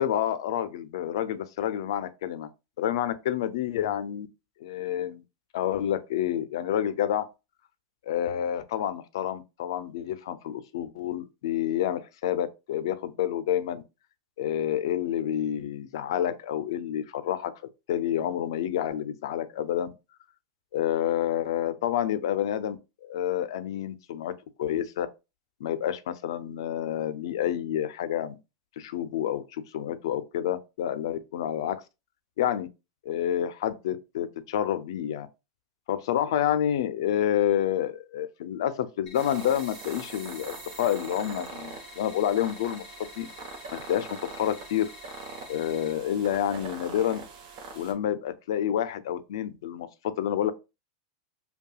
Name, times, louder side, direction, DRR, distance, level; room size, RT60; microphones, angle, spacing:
voice 1, 0.0-2.5 2.8-4.3 4.6-5.2 5.5-7.3 8.1-13.8 14.4-17.5 17.9-19.9 20.7-24.3 24.6-25.1 25.6-28.4 28.8-31.8 32.4-32.7 33.0-35.3 35.9-43.3 43.7-44.9 45.5-47.2 47.7-50.5, left 10 dB, 75° left, 0.4 m, -29 dB
sound 1, 39.1-45.9, left 5 dB, 30° left, 0.9 m, -49 dB
sound 2, 39.1-47.9, right 4 dB, 50° right, 0.9 m, -42 dB
5.4 x 2.3 x 2.3 m
supercardioid pair, 160°, 2 cm